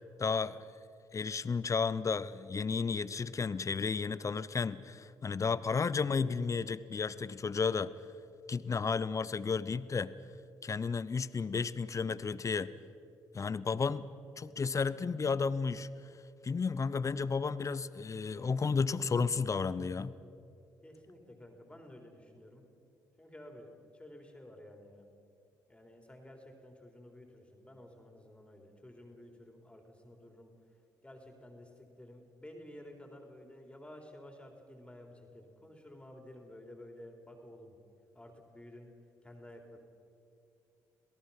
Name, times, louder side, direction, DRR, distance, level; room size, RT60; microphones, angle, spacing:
voice 1, 0.2-0.6 1.1-7.9 8.5-10.1 10.6-12.7 13.3-14.1 14.4-15.9 16.4-20.1, left 5 dB, 35° left, 16 dB, 0.9 m, -32 dB
voice 2, 20.8-22.6 23.2-25.1 25.7-30.5 31.0-37.7 38.1-38.9 39.2-39.8, left 1 dB, 10° left, 3 dB, 3.9 m, -52 dB
27.0 x 17.5 x 5.8 m, 2.6 s
hypercardioid pair, 55°, 9 cm